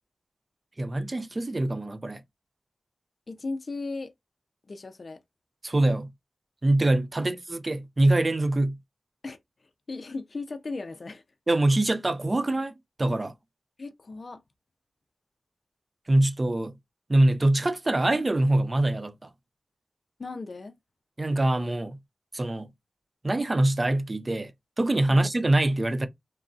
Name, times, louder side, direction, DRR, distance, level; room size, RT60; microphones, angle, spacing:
voice 1, 0.8-2.2 5.6-6.1 6.6-8.8 11.5-12.7 13.0-13.3 16.1-16.7 17.1-19.3 21.2-22.0 22.3-22.7 23.2-24.5 24.8-26.1, right 1 dB, 35° right, 0.4 m, -24 dB
voice 2, 3.3-4.1 4.7-5.2 7.2-7.3 9.2-11.2 13.8-14.4 20.2-20.8 25.1-25.3, left 3 dB, 55° left, 0.4 m, -37 dB
2.9 x 2.5 x 2.3 m
wide cardioid pair, 65°, 0 cm